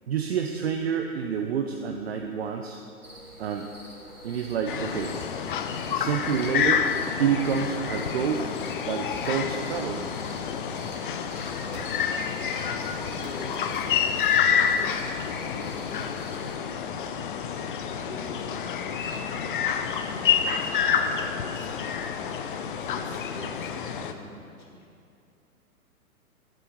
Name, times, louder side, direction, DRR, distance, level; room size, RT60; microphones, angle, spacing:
voice 1, 0.1-2.8 3.4-3.7 4.2-5.1 5.9-6.9 7.2-8.4 8.8-10.1, right 7 dB, 45° right, 4 dB, 0.8 m, -28 dB
sound 1, 3.0-16.6, right 1 dB, 80° right, 3.3 m, -46 dB
sound 2, 4.7-24.1, left 7 dB, 35° left, 0.7 m, -28 dB
sound 3, 11.7-12.4 13.2-13.9 15.7-15.8, right 3 dB, 15° right, 1.0 m, -49 dB
voice 2, 12.3-14.4 14.7-17.5 17.8-24.9, left 2 dB, 65° left, -4 dB, 3.5 m, -46 dB
20.5 x 8.0 x 4.7 m, 2.5 s
figure-of-eight pair, 120°, 44 cm